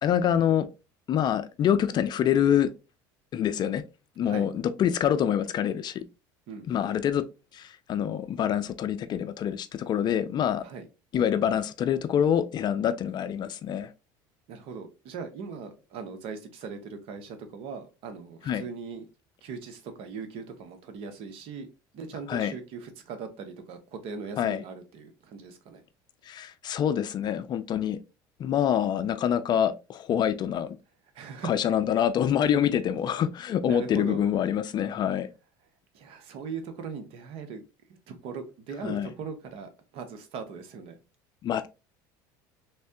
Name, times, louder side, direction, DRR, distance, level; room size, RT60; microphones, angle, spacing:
voice 1, 0.0-0.7 1.1-2.7 3.3-3.8 4.2-6.0 6.7-7.2 7.5-10.6 11.1-13.9 18.5-18.6 22.3-22.5 24.4-24.6 26.3-28.0 28.4-30.8 31.4-35.3 38.8-39.1 41.4-41.7, left 9 dB, 40° left, 0.4 m, -26 dB
voice 2, 14.5-19.1 19.4-21.7 21.9-25.8 31.1-31.5 33.6-34.2 35.9-37.6 38.1-41.0, right 5 dB, 60° right, 0.9 m, -39 dB
3.3 x 3.2 x 2.8 m
supercardioid pair, 95°, 11 cm